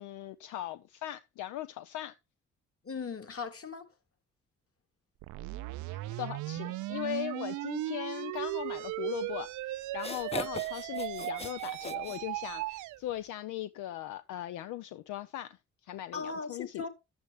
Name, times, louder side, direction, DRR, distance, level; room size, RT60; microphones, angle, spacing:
voice 1, 0.0-2.2 5.9-16.9, left 13 dB, 75° left, 0.7 m, -39 dB
voice 2, 2.8-3.9 16.1-16.9, left 5 dB, 50° left, 2.5 m, -38 dB
sound 1, 5.2-13.0, right 17 dB, 75° right, 0.5 m, -37 dB
sound 2, 9.4-9.5 9.9-12.8, left 3 dB, 20° left, 0.8 m, -41 dB
11.5 x 8.0 x 3.2 m
hypercardioid pair, 45°, 30 cm